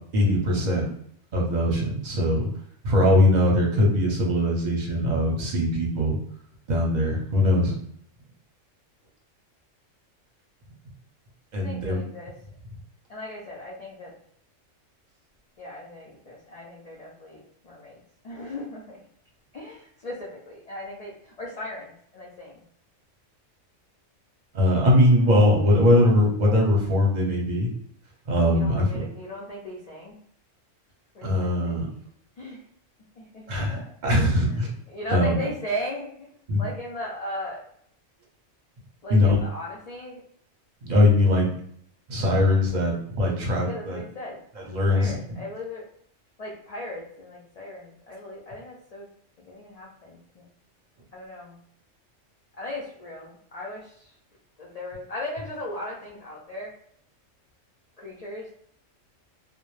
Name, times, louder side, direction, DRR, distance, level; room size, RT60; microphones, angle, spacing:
voice 1, 0.1-0.8 1.3-2.5 2.8-6.2 6.7-7.8 11.5-12.0 24.5-27.7 28.3-29.0 31.2-31.9 33.5-33.8 34.0-34.7 35.1-35.4 36.5-36.6 39.1-39.4 40.8-41.5 42.1-44.0 44.7-45.2, left 1 dB, 45° right, -2 dB, 0.6 m, -21 dB
voice 2, 11.6-12.3 13.1-14.1 15.6-19.0 19.5-22.6 28.5-30.2 31.1-31.8 32.4-32.6 33.2-34.6 34.9-37.6 39.0-40.2 43.7-44.4 44.9-45.8 46.4-49.1 49.5-50.5 51.1-51.6 52.6-54.1 54.6-56.7 58.0-58.5, left 1 dB, 70° left, -4 dB, 0.3 m, -37 dB
2.1 x 2.0 x 3.0 m, 0.66 s
omnidirectional pair, 1.3 m